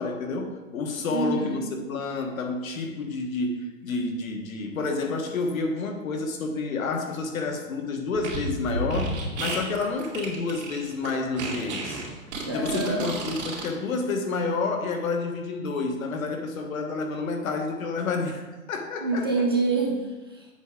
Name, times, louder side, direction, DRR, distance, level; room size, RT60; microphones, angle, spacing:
voice 1, 0.0-1.6 1.9-12.0 12.5-19.3, left 3 dB, 70° left, 4 dB, 1.6 m, -29 dB
voice 2, 1.1-1.7 12.5-13.1 19.0-20.5, right 3 dB, 20° right, -2 dB, 0.4 m, -27 dB
Fart, 8.1-13.7, right 2 dB, 50° right, 2.6 m, -32 dB
8.1 x 6.4 x 3.7 m, 1.2 s
hypercardioid pair, 175°, 42 cm